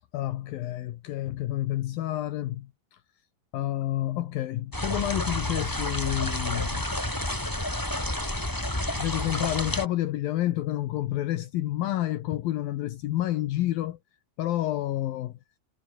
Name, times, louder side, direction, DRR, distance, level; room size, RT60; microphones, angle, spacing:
voice 1, 0.1-3.0 3.5-6.9 9.0-14.0 14.4-15.4, left 14 dB, 80° left, 2.1 m, -29 dB
sound 1, 4.7-9.8, left 1 dB, 10° left, 1.5 m, -30 dB
omnidirectional pair, 5.7 m